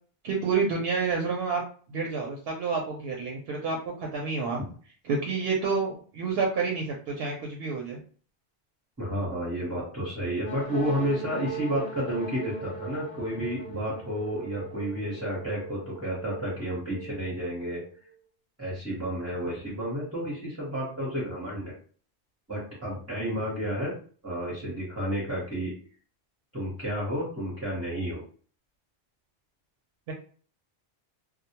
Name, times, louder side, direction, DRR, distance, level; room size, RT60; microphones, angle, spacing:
voice 1, 0.2-1.6 1.9-4.6 5.1-8.0 24.6-24.7 30.1-30.2, right 4 dB, 70° right, 0 dB, 0.8 m, -29 dB
voice 2, 9.0-17.8 18.6-21.7 22.5-23.9 24.2-25.7 26.5-28.2, equal, 15° right, -6 dB, 0.8 m, -31 dB
sound 1, 10.4-18.1, right 2 dB, 55° left, 0.6 m, -40 dB
2.1 x 2.1 x 2.8 m, 0.43 s
omnidirectional pair, 1.1 m